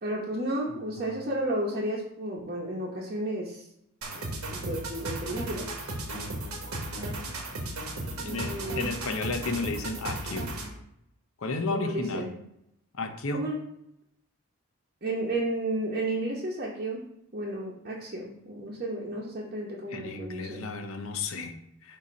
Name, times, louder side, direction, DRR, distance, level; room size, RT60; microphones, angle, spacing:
voice 1, 0.0-3.6 4.5-5.7 8.2-8.9 11.7-12.3 13.3-13.6 15.0-17.0 17.3-20.7, right 1 dB, 40° right, -5 dB, 0.9 m, -32 dB
voice 2, 0.7-1.3 6.1-6.4 8.2-10.6 11.4-12.3 12.9-13.5 19.9-22.0, left 3 dB, 70° left, 6 dB, 0.7 m, -33 dB
sound 1, 4.0-10.8, right 2 dB, 90° right, 1.2 m, -35 dB
6.8 x 2.8 x 5.1 m, 0.80 s
head